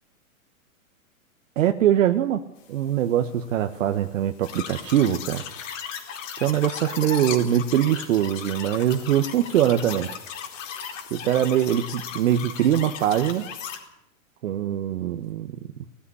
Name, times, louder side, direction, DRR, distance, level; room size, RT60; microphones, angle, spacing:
voice 1, 1.6-2.4 2.7-5.4 6.4-10.1 11.1-13.4 14.4-15.5, right 11 dB, 65° right, 7 dB, 1.4 m, -22 dB
sound 1, 4.4-13.8, left 7 dB, 65° left, 4.5 m, -36 dB
19.0 x 14.5 x 9.8 m, 0.82 s
hypercardioid pair, 125°, 41 cm